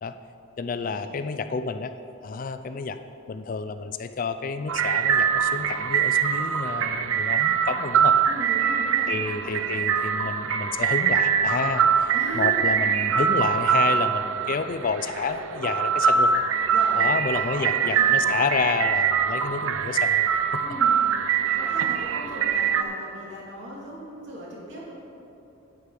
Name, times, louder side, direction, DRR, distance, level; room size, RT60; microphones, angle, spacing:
voice 1, 0.6-1.9 2.2-3.0 3.3-8.2 9.1-16.3 17.0-20.3 20.5-20.6, left 4 dB, 40° left, 10 dB, 0.3 m, -29 dB
sound 1, 4.7-22.8, right 7 dB, 75° right, 0.5 m, -23 dB
voice 2, 8.3-9.1 9.4-9.8 12.1-13.0 16.6-18.2 20.6-21.0 21.3-24.9, equal, 60° right, -5 dB, 2.7 m, -38 dB
10.5 x 8.5 x 4.9 m, 2.8 s
head